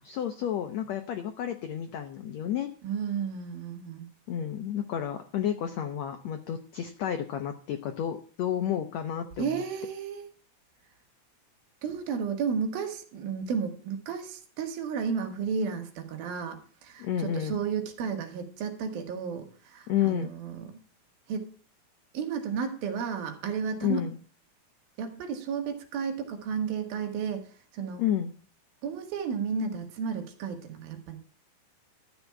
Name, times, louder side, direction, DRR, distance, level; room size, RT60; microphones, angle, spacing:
voice 1, 0.0-2.7 4.3-9.6 17.0-17.6 19.9-20.3 23.8-24.2 28.0-28.3, left 10 dB, 85° left, 7 dB, 1.5 m, -31 dB
voice 2, 2.8-4.1 9.4-10.3 11.8-20.7 21.3-21.5 22.1-24.0 25.0-27.5 27.7-28.0 28.8-31.2, right 6 dB, 75° right, 5 dB, 3.2 m, -33 dB
13.5 x 4.6 x 8.4 m, 0.43 s
omnidirectional pair, 4.3 m